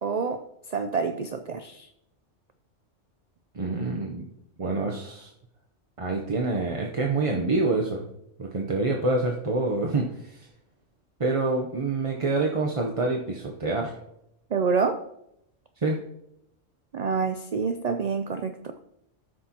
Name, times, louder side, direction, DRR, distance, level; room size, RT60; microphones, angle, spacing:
voice 1, 0.0-0.4 0.7-1.9 14.5-15.0 16.9-18.5, right 5 dB, 70° right, 8 dB, 0.3 m, -27 dB
voice 2, 3.5-4.2 4.6-5.3 6.0-8.1 8.4-10.5 11.2-13.9 15.8-16.0, right 3 dB, 35° right, 0 dB, 0.6 m, -26 dB
14.0 x 6.2 x 2.9 m, 0.79 s
omnidirectional pair, 1.3 m